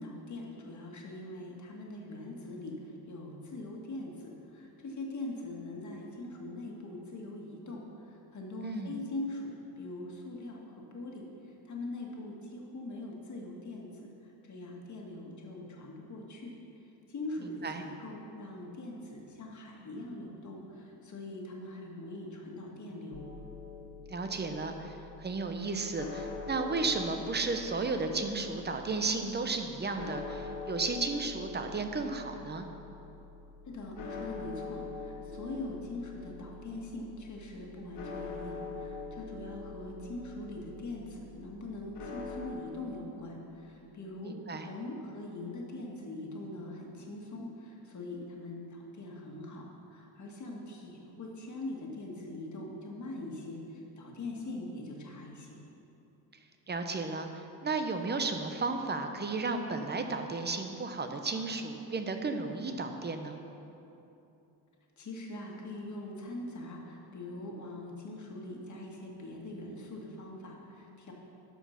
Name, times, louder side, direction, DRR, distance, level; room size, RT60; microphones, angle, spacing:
voice 1, 0.0-2.8 3.1-7.8 8.3-10.7 10.9-11.2 11.7-14.1 14.5-16.5 17.1-23.3 33.7-53.6 54.0-55.6 65.0-71.1, left 2 dB, 45° left, -1 dB, 1.7 m, -42 dB
voice 2, 8.6-8.9 17.6-17.8 24.1-32.7 44.2-44.7 56.7-63.4, right 3 dB, 25° right, 6 dB, 0.7 m, -34 dB
sound 1, 23.1-42.5, left 4 dB, 70° left, 1.4 m, -44 dB
12.5 x 5.0 x 5.7 m, 2.9 s
cardioid pair, 120°, 42 cm